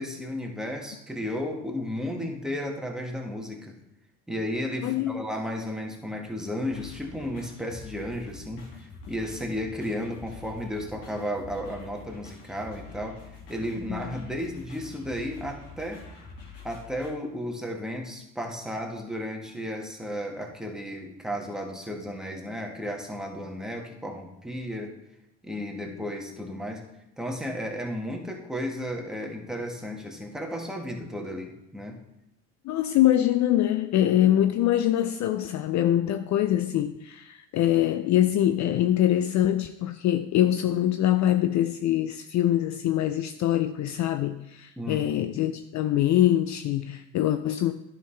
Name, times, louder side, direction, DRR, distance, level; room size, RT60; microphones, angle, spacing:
voice 1, 0.0-3.8 4.3-8.7 9.1-13.2 13.5-16.0 16.6-24.9 25.4-26.9 27.2-32.0 44.8-45.4, equal, ahead, 1.6 m, -34 dB
voice 2, 4.8-5.2 13.9-14.0 32.6-47.7, left 12 dB, 45° left, 0.5 m, -24 dB
sound 1, 6.7-17.1, left 4 dB, 75° left, 2.3 m, -46 dB
10.5 x 5.8 x 3.3 m
hypercardioid pair, 65°, 39 cm